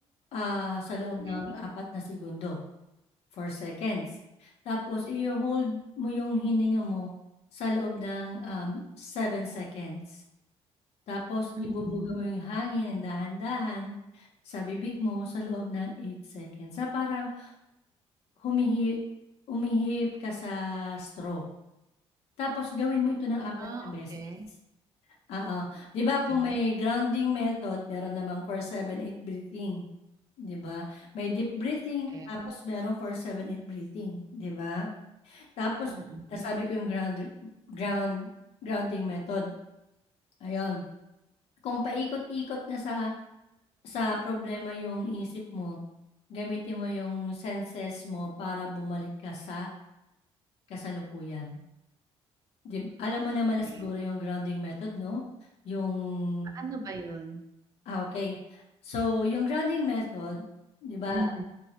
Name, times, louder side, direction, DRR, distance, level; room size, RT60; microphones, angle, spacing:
voice 1, 0.3-2.6 3.4-4.1 4.4-7.1 7.5-10.2 11.1-17.5 18.4-19.0 19.5-21.4 22.4-23.5 23.8-24.1 25.3-29.8 30.4-34.9 35.3-35.9 36.3-37.3 37.7-38.3 38.6-39.5 40.4-40.8 41.6-43.1 43.8-45.8 46.3-49.7 50.7-51.6 52.6-55.2 55.6-56.5 57.9-60.4 60.8-61.3, left 3 dB, 65° left, -2 dB, 0.6 m, -32 dB
voice 2, 1.2-1.5 11.6-12.2 23.6-24.5 26.3-26.5 32.1-32.5 35.9-36.5 53.6-54.0 56.5-57.4 61.1-61.4, right 2 dB, 35° right, 4 dB, 0.4 m, -38 dB
3.9 x 2.0 x 2.8 m, 0.89 s
cardioid pair, 145°, 11 cm